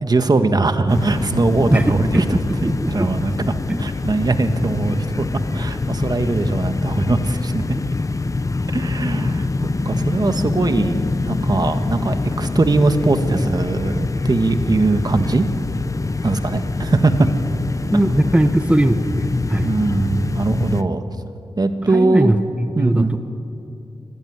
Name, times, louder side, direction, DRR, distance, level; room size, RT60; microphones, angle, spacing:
voice 1, 0.0-2.2 2.9-5.2 5.5-7.6 8.7-15.4 16.2-17.3 19.6-21.0 21.6-22.3 22.7-23.1, right 3 dB, 40° right, 8 dB, 1.6 m, -20 dB
sound 1, 0.9-20.8, left 3 dB, 35° left, 0.8 m, -24 dB
voice 2, 1.7-3.1 3.7-3.8 17.9-19.7 21.9-23.2, right 1 dB, 15° right, 7 dB, 1.1 m, -19 dB
24.5 x 18.5 x 9.6 m, 2.7 s
cardioid pair, 70°, 10 cm